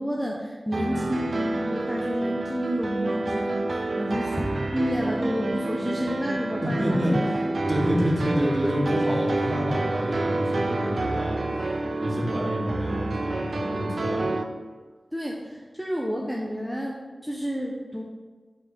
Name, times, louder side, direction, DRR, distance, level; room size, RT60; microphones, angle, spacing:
voice 1, 0.0-7.3 15.1-18.0, equal, ahead, -2 dB, 0.8 m, -30 dB
sound 1, 0.7-14.4, right 2 dB, 65° right, 0.6 m, -28 dB
voice 2, 6.6-7.4 7.7-14.3, equal, 30° right, -4 dB, 2.1 m, -28 dB
6.2 x 4.3 x 5.3 m, 1.4 s
wide cardioid pair, 65°, 0 cm